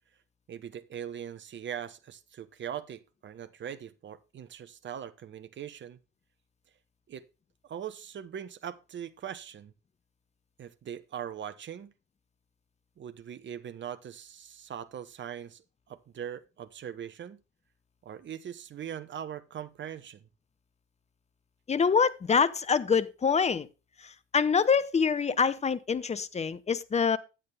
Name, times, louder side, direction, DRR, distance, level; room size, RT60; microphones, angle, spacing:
voice 1, 0.5-6.0 7.1-7.2 7.6-9.7 10.6-11.9 13.0-17.4 18.0-20.3, right 9 dB, 30° right, 0.9 m, -41 dB
voice 2, 21.7-23.7 24.0-27.2, left 6 dB, 20° left, 0.7 m, -25 dB
10.0 x 8.5 x 3.4 m
figure-of-eight pair, 60°, 35 cm